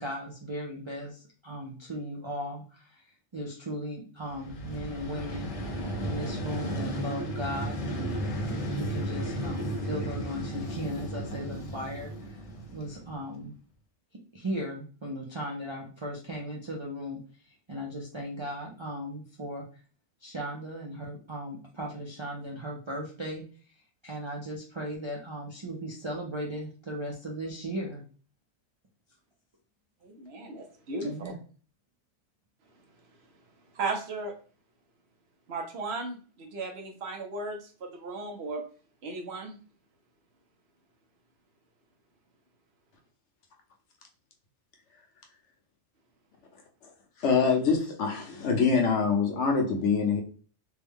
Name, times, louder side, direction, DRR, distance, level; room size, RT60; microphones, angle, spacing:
voice 1, 0.0-5.5 6.0-12.4 12.7-13.5 14.3-19.7 20.2-23.4 24.0-28.0 31.0-31.4, equal, 40° right, -3 dB, 0.4 m, -37 dB
Vehicle, 4.3-13.2, equal, 40° left, 0.5 m, -34 dB
voice 2, 30.0-31.3 33.7-34.3 35.5-38.6 39.0-39.6, right 3 dB, 60° right, 4 dB, 0.8 m, -36 dB
voice 3, 47.2-50.2, left 5 dB, 70° left, 2 dB, 1.1 m, -24 dB
3.4 x 2.1 x 3.5 m, 0.39 s
omnidirectional pair, 1.3 m